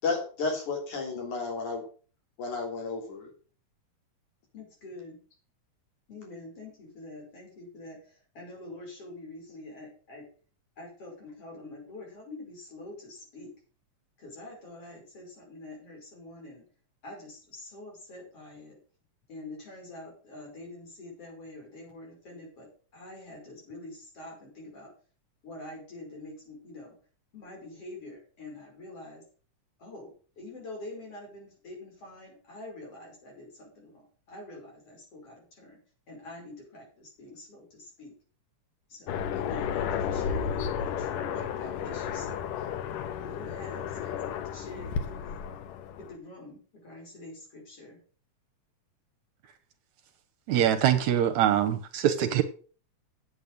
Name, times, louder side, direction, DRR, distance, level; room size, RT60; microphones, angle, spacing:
voice 1, 0.0-1.8 2.4-3.3, left 4 dB, 65° left, 1 dB, 4.7 m, -32 dB
voice 2, 4.5-5.2 6.1-10.3 10.8-13.5 14.2-16.6 17.0-18.8 19.3-24.9 25.4-27.0 27.3-29.2 29.8-35.8 36.1-38.1 38.9-42.5 43.2-45.4 46.0-48.0, left 2 dB, 45° left, -1 dB, 6.3 m, -46 dB
Aircraft, 39.1-46.2, left 8 dB, 90° left, 2.6 m, -33 dB
voice 3, 50.5-52.4, right 10 dB, 75° right, 9 dB, 2.0 m, -23 dB
8.6 x 8.5 x 6.6 m, 0.40 s
omnidirectional pair, 3.7 m